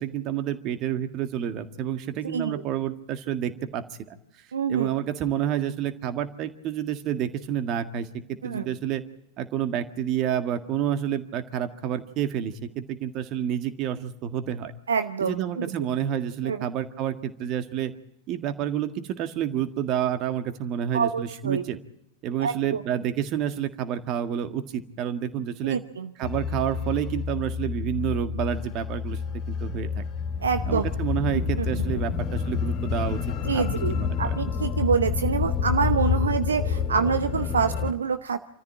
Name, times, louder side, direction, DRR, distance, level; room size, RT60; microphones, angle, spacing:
voice 1, 0.0-4.2 4.7-9.0 9.4-14.7 15.2-17.9 18.3-21.8 22.2-25.8 26.2-29.2 29.5-30.0 30.7-33.2 33.5-33.6 33.9-34.4, right 9 dB, 40° right, 9 dB, 1.7 m, -29 dB
voice 2, 2.3-2.6 4.5-4.9 8.4-8.7 14.9-15.6 16.4-16.6 20.9-21.6 22.4-22.8 25.6-26.1 30.4-30.8 31.6-31.8 33.4-38.4, right 6 dB, 70° right, 10 dB, 0.8 m, -26 dB
sound 1, 26.2-37.9, left 7 dB, 35° left, 2.7 m, -28 dB
27.5 x 14.0 x 8.8 m, 0.81 s
figure-of-eight pair, 90°, 0 cm